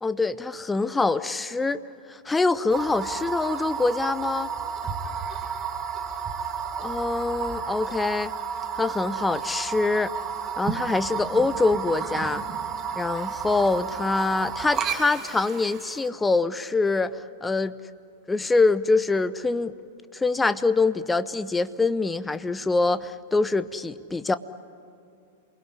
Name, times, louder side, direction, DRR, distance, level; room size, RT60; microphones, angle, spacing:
voice 1, 0.0-1.8 2.1-4.5 6.8-8.3 8.8-10.1 10.6-12.4 12.9-17.1 17.4-17.7 18.3-19.8 20.1-24.4, left 3 dB, 10° left, 14 dB, 0.8 m, -24 dB
sound 1, 2.7-16.1, right 7 dB, 25° right, 1.6 m, -32 dB
28.0 x 20.5 x 9.9 m, 2.5 s
figure-of-eight pair, 95°, 0 cm